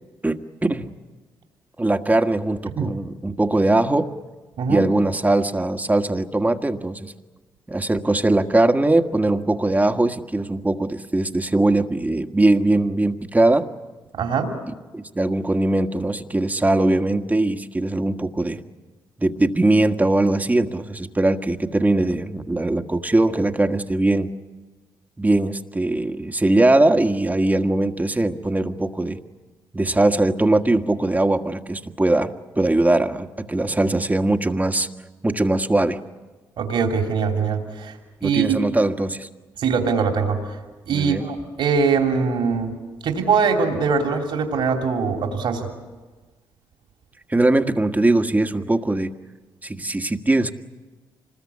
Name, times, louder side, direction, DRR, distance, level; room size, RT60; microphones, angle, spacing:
voice 1, 0.2-0.9 1.8-4.1 4.7-7.1 7.7-13.7 14.9-18.6 19.2-24.3 25.2-29.2 29.7-34.9 35.2-36.0 38.2-39.3 40.9-41.3 47.3-49.1 49.6-50.5, right 2 dB, 20° right, 7 dB, 1.7 m, -20 dB
voice 2, 14.1-14.5 36.6-38.0 38.2-38.6 39.6-40.6 40.9-42.7 43.0-45.7, right 5 dB, 70° right, 3 dB, 3.2 m, -22 dB
26.0 x 20.5 x 8.5 m, 1.3 s
supercardioid pair, 50°, 9 cm